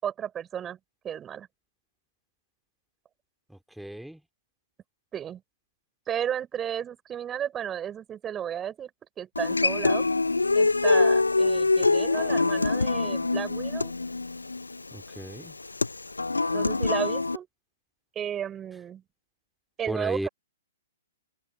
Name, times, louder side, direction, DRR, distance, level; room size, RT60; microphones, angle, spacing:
voice 1, 0.0-0.8 1.0-1.5 5.1-5.4 6.1-8.9 9.2-10.1 10.5-13.9 16.5-17.5 18.1-19.0 19.8-20.3, right 9 dB, 15° right, 6.0 m, -33 dB
voice 2, 3.5-4.2 14.9-15.6 19.9-20.3, right 1 dB, ahead, 2.9 m, -35 dB
Human voice / Acoustic guitar, 9.4-17.4, left 3 dB, 75° left, 0.7 m, -24 dB
open air
figure-of-eight pair, 115°, 0 cm